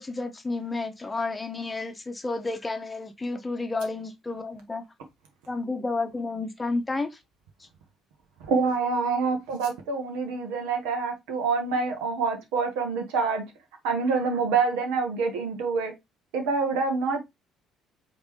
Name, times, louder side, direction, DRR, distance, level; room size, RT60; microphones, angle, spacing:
voice 1, 0.0-4.8 5.5-7.1, left 3 dB, 20° left, 0.9 m, -31 dB
voice 2, 8.5-13.4 13.8-15.9 16.3-17.2, right 4 dB, 65° right, 1.2 m, -26 dB
5.0 x 3.1 x 3.1 m
figure-of-eight pair, 50°, 0 cm